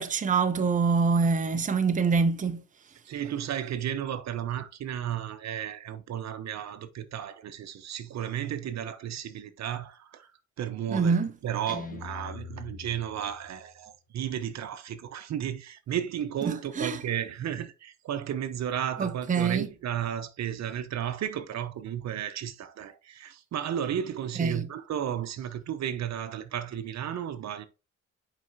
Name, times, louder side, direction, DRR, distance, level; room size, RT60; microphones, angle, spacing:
voice 1, 0.0-2.6 10.9-11.3 16.5-17.0 19.0-19.7 24.4-24.7, right 5 dB, 25° right, 0.8 m, -25 dB
voice 2, 3.0-10.3 10.6-27.7, right 10 dB, 60° right, 0.8 m, -33 dB
Guitar, 11.7-13.7, left 5 dB, 30° left, 1.4 m, -42 dB
7.5 x 4.9 x 2.7 m
cardioid pair, 90°, 30 cm